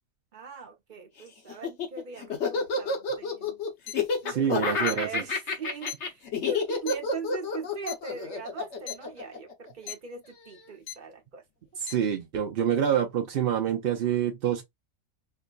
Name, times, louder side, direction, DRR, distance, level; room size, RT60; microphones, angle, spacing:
voice 1, 0.3-3.6 4.2-11.4, right 5 dB, 40° right, 0.9 m, -41 dB
Laughter, 1.5-9.9, left 4 dB, 55° left, 1.2 m, -29 dB
sound 1, 3.9-4.0 4.9-5.0 5.9-6.0 6.9-7.0 7.9-8.0 8.9-9.0 9.9-10.0 10.9-11.0 11.9-12.0, left 12 dB, 80° left, 1.0 m, -36 dB
voice 2, 4.3-5.2 11.8-14.6, right 9 dB, 65° right, 0.6 m, -27 dB
4.5 x 2.1 x 2.4 m
omnidirectional pair, 1.5 m